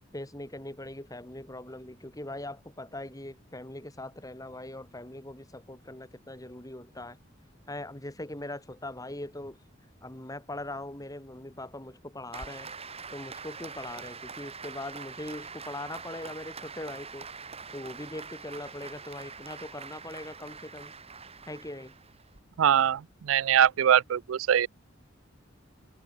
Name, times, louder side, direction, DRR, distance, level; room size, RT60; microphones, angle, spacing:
voice 1, 0.1-7.2 7.7-9.6 10.0-12.7 13.1-17.3 17.7-20.9 21.5-21.9, left 1 dB, 20° left, 3.2 m, -41 dB
Applause, 12.3-22.4, right 5 dB, 30° right, 5.4 m, -44 dB
voice 2, 22.6-24.7, right 9 dB, 90° right, 0.4 m, -23 dB
head